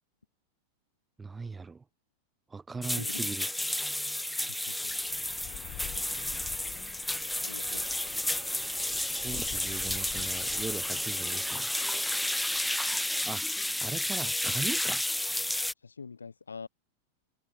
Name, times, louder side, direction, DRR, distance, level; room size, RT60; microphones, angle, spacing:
voice 1, 1.2-1.8 2.5-3.5 9.2-11.7 13.2-13.4 13.8-15.0, right 4 dB, 15° right, 1.1 m, -39 dB
sound 1, 2.8-15.7, left 1 dB, 5° left, 0.4 m, -32 dB
voice 2, 3.0-3.3 4.4-4.9 7.4-7.9 15.8-16.7, left 5 dB, 75° left, 0.9 m, -44 dB
sound 2, 4.9-11.6, left 18 dB, 40° left, 2.5 m, -48 dB
sound 3, 7.7-13.2, right 16 dB, 35° right, 2.1 m, -52 dB
open air
figure-of-eight pair, 90°, 0 cm